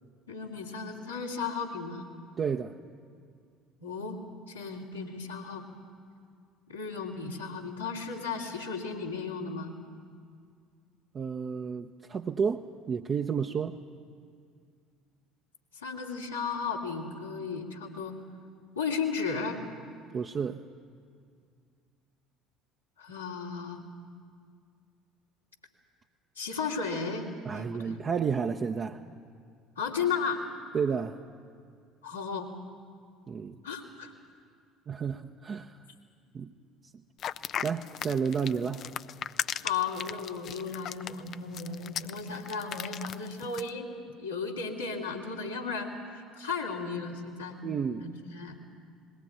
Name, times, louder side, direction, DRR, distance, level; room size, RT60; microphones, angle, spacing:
voice 1, 0.3-2.1 3.8-4.2 4.5-5.6 6.7-9.7 15.7-18.2 18.7-19.6 23.0-23.8 26.3-28.0 29.8-30.4 32.0-32.5 33.6-34.1 39.6-43.9 44.2-47.6 48.0-48.6, left 5 dB, 85° left, -4 dB, 2.8 m, -35 dB
voice 2, 2.4-2.8 11.1-13.8 20.1-20.6 27.4-29.0 30.7-31.2 33.3-33.6 34.9-35.8 36.3-36.5 37.6-38.8 47.6-48.1, right 6 dB, 35° right, 2 dB, 0.8 m, -31 dB
sound 1, 37.2-43.7, left 10 dB, 45° left, 0.5 m, -37 dB
20.5 x 18.0 x 9.3 m, 2.2 s
figure-of-eight pair, 60°, 0 cm